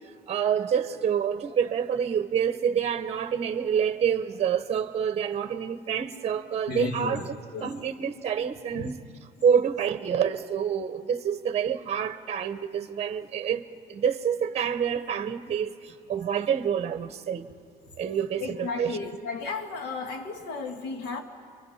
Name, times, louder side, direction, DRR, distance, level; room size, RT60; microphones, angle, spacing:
voice 1, 0.3-9.0 9.4-13.6 13.9-15.7 16.1-17.5 18.0-19.0, right 8 dB, 40° right, 1.0 m, -27 dB
voice 2, 6.7-7.8 8.7-8.9 18.4-21.2, left 4 dB, 85° left, 2.1 m, -34 dB
29.0 x 23.5 x 5.7 m
cardioid pair, 110°, 17 cm